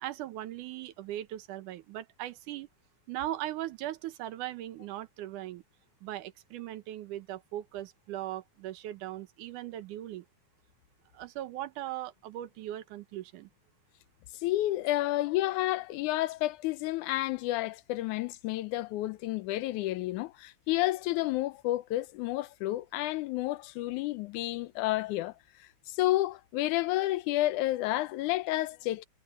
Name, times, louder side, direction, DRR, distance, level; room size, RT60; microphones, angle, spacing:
voice 1, 0.0-2.7 3.1-5.6 6.0-10.2 11.1-13.5, right 13 dB, 85° right, 2.5 m, -39 dB
voice 2, 14.3-25.3 25.6-29.1, left 16 dB, 80° left, 2.2 m, -30 dB
omnidirectional pair, 3.5 m